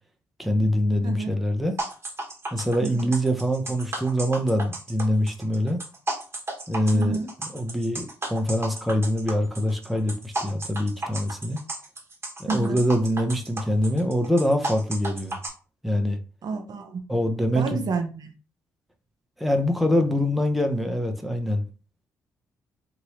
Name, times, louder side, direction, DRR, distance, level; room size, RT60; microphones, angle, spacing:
voice 1, 0.4-1.8 2.5-5.8 6.7-7.2 7.5-11.6 12.4-15.4 15.8-16.2 17.1-17.9 19.4-21.7, equal, ahead, 0.7 m, -24 dB
voice 2, 1.0-1.3 2.8-3.1 6.9-7.3 12.5-12.8 16.4-17.0 17.5-18.3, right 4 dB, 55° right, 0.6 m, -30 dB
sound 1, 1.8-15.5, right 2 dB, 30° right, 1.2 m, -33 dB
2.9 x 2.7 x 3.0 m
hypercardioid pair, 50°, 8 cm